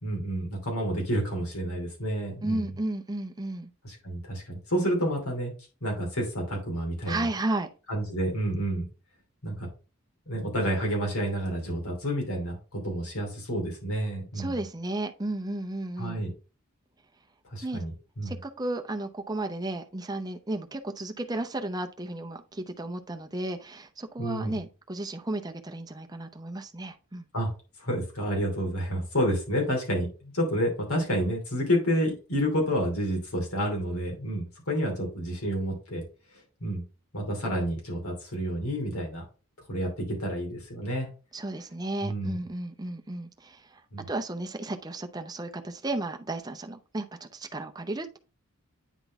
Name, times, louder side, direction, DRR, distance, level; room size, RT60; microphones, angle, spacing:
voice 1, 0.0-2.7 3.8-5.5 5.8-7.3 7.9-8.9 9.4-9.7 10.3-14.5 16.0-16.3 17.5-18.4 24.2-24.6 27.3-27.5 27.8-36.0 36.6-36.8 37.1-39.2 39.7-39.9 40.2-41.1 42.0-42.4 43.9-44.0, equal, 85° left, 2.8 m, -29 dB
voice 2, 2.4-3.7 7.1-7.7 14.3-16.2 17.6-17.8 18.2-27.2 41.3-43.8 44.1-48.2, right 2 dB, 20° right, 0.6 m, -33 dB
9.1 x 3.8 x 3.6 m
head